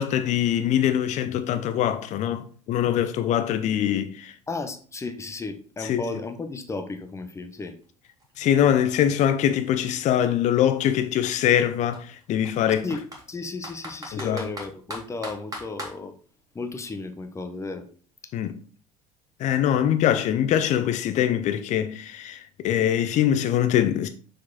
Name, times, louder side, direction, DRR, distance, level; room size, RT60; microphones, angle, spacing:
voice 1, 0.0-4.3 5.8-6.0 8.4-12.9 14.1-14.5 18.3-18.6 19.4-24.1, left 10 dB, 40° left, 0.7 m, -23 dB
voice 2, 4.5-7.7 12.8-13.0 13.3-16.1 16.5-17.9, left 3 dB, 15° left, 1.0 m, -34 dB
Computer keyboard, 7.7-7.8 8.0-10.0 10.8-10.9 11.2-11.3 11.9-13.2 13.6-16.0, equal, 20° right, 2.1 m, -39 dB
6.3 x 4.8 x 4.1 m
figure-of-eight pair, 65°, 18 cm